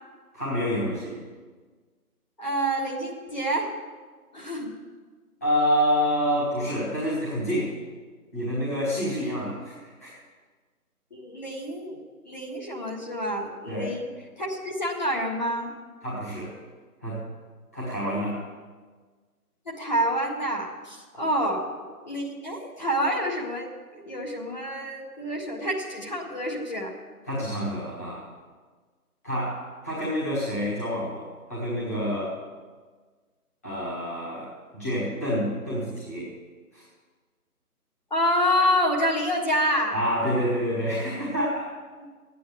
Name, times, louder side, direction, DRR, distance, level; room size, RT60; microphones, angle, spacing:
voice 1, 0.3-1.2 5.4-7.7 8.3-10.1 13.7-13.9 16.0-16.5 17.0-17.2 17.7-18.4 21.1-21.2 27.2-28.3 29.2-32.4 33.6-36.3 36.7-36.8 39.9-41.6, equal, 10° left, -11 dB, 1.5 m, -28 dB
voice 2, 2.4-3.7 4.3-4.7 9.2-9.5 11.1-12.0 12.3-14.1 14.4-15.7 19.7-26.9 38.1-40.0 42.0-42.1, equal, 30° left, -3 dB, 1.8 m, -28 dB
12.5 x 9.4 x 7.9 m, 1.4 s
figure-of-eight pair, 175°, 46 cm